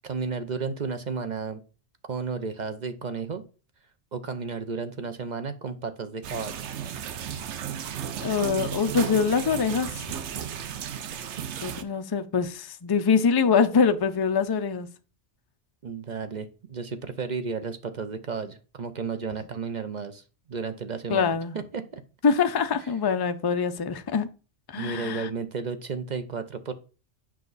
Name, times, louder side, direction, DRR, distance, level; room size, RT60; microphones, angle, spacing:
voice 1, 0.0-1.6 2.1-3.4 4.1-6.6 11.1-11.3 15.8-20.2 20.5-22.0 24.7-26.7, right 5 dB, 45° right, 0.7 m, -33 dB
sound 1, 6.2-11.8, right 9 dB, 75° right, 1.0 m, -34 dB
voice 2, 8.2-9.9 11.6-14.9 21.1-21.6 22.2-24.3 24.7-25.3, left 6 dB, 35° left, 0.4 m, -24 dB
7.6 x 5.5 x 4.0 m
omnidirectional pair, 1.2 m